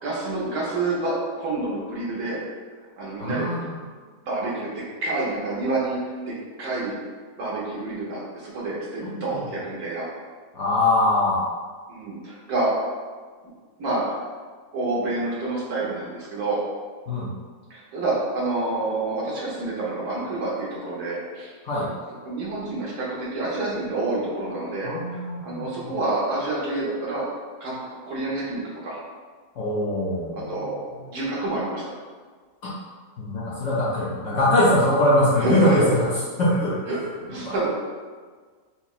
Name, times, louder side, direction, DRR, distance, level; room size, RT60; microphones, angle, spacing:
voice 1, 0.0-2.4 3.0-3.5 4.2-6.9 7.4-10.1 11.9-12.7 13.8-14.2 14.7-16.6 17.7-21.5 22.2-27.2 27.6-27.8 28.1-29.0 30.5-30.8 31.1-31.9 35.4-35.9 36.9-37.0 37.3-37.7, right 2 dB, 70° right, -6 dB, 1.4 m, -28 dB
voice 2, 3.2-3.8 9.0-9.5 10.5-11.5 17.1-17.3 21.6-21.9 24.8-25.9 29.6-31.0 32.6-32.7 33.2-36.1 36.4-36.8 37.4-37.6, left 1 dB, 65° left, -6 dB, 0.7 m, -23 dB
5.7 x 2.1 x 2.4 m, 1.5 s
omnidirectional pair, 1.7 m